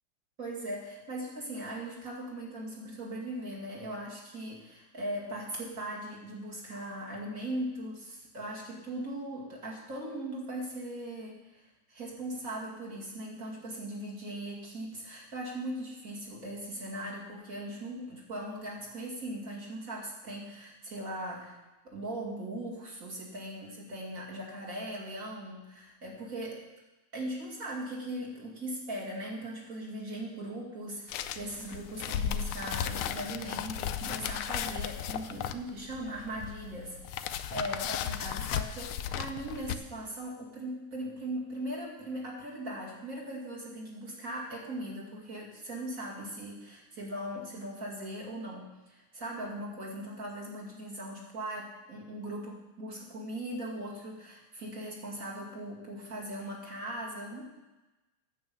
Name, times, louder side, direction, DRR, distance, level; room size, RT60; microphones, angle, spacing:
voice 1, 0.4-21.6 21.8-26.7 27.1-57.5, right 1 dB, 40° right, -3 dB, 2.6 m, -39 dB
sound 1, 31.1-39.7, left 9 dB, 85° left, 1.5 m, -35 dB
9.4 x 7.9 x 6.9 m, 1.1 s
omnidirectional pair, 2.3 m